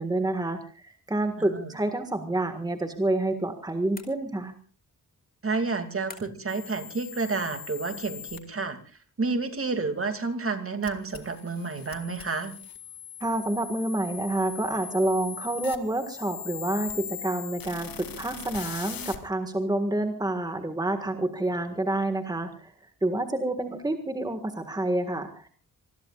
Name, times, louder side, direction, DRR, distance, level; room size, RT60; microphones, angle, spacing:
voice 1, 0.0-4.6 13.2-22.7 23.0-25.5, right 1 dB, 10° right, 7 dB, 1.7 m, -28 dB
voice 2, 1.4-1.8 5.4-12.5, right 4 dB, 40° right, 8 dB, 2.5 m, -30 dB
sound 1, 3.9-4.7 6.1-6.6, left 3 dB, 25° left, 4.7 m, -47 dB
sound 2, 6.5-8.4 10.8-19.2, left 8 dB, 80° left, 2.1 m, -40 dB
27.0 x 20.5 x 2.4 m, 0.36 s
wide cardioid pair, 155°, 34 cm